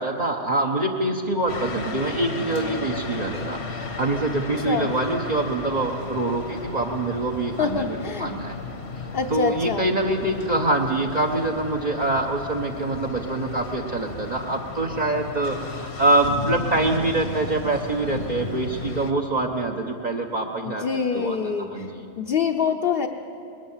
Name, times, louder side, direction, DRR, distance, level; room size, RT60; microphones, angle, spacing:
voice 1, 0.0-8.6 9.3-20.9 21.1-22.1, right 2 dB, 45° right, 2 dB, 1.2 m, -25 dB
sound 1, 1.5-19.1, left 3 dB, 75° left, 1.6 m, -34 dB
voice 2, 7.6-8.3 9.1-9.9 20.6-21.9 22.2-23.1, left 6 dB, 60° left, 1 dB, 1.0 m, -25 dB
20.5 x 19.5 x 7.3 m, 2.7 s
omnidirectional pair, 1.1 m